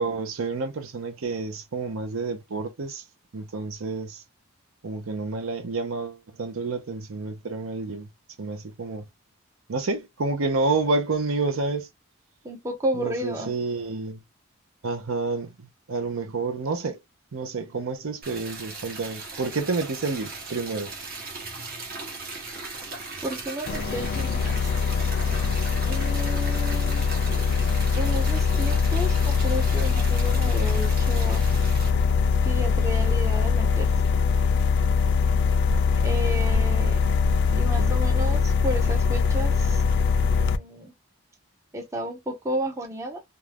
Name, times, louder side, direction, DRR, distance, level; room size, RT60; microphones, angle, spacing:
voice 1, 0.0-3.0 3.3-4.2 4.8-8.1 8.4-9.0 9.7-11.9 12.9-14.2 14.8-15.5 15.9-17.0 17.3-20.9 37.5-38.0, right 3 dB, 70° right, 0.6 m, -29 dB
voice 2, 12.4-13.5 23.2-24.6 25.8-27.0 27.9-31.4 32.4-33.9 36.0-37.0 37.6-39.8 40.4-40.9 41.7-43.2, equal, 15° right, 0.6 m, -32 dB
Liquid, 18.2-31.9, right 3 dB, 45° right, 1.0 m, -38 dB
sound 1, 23.7-40.6, left 5 dB, 50° left, 0.3 m, -22 dB
2.6 x 2.3 x 3.3 m
head